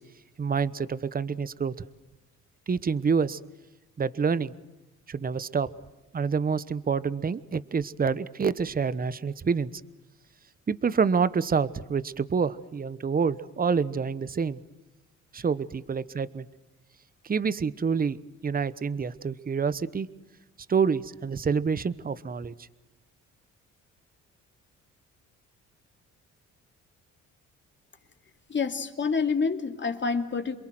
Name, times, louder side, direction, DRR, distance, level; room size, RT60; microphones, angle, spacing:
voice 1, 0.4-1.7 2.7-3.4 4.0-4.5 5.1-5.7 6.1-9.7 10.7-14.6 15.3-16.5 17.2-18.2 18.4-20.1 20.7-22.5, right 5 dB, 30° right, 16 dB, 1.0 m, -27 dB
voice 2, 28.5-30.6, left 5 dB, 40° left, 6 dB, 2.8 m, -27 dB
28.0 x 22.5 x 7.8 m, 1.0 s
cardioid pair, 90°, 30 cm